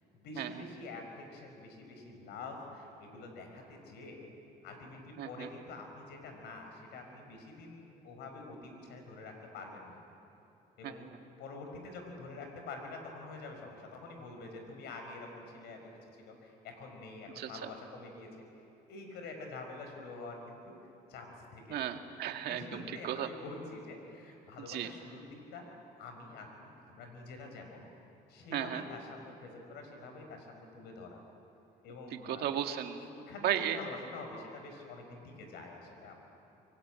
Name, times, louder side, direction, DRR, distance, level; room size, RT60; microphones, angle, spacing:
voice 1, 0.1-4.2 4.6-10.0 10.8-11.1 11.4-15.8 16.2-18.3 18.9-20.4 20.7-20.8 21.1-21.9 22.4-25.2 25.5-25.7 26.0-27.8 28.3-31.2 31.8-32.5 33.0-36.2, left 3 dB, 80° left, 4 dB, 5.2 m, -47 dB
voice 2, 5.2-5.5 10.8-11.1 17.4-17.7 21.7-23.3 24.7-24.9 28.5-28.8 32.1-33.0 33.4-33.8, right 10 dB, 70° right, 5 dB, 2.0 m, -35 dB
25.0 x 22.5 x 9.0 m, 2.8 s
cardioid pair, 110°, 17 cm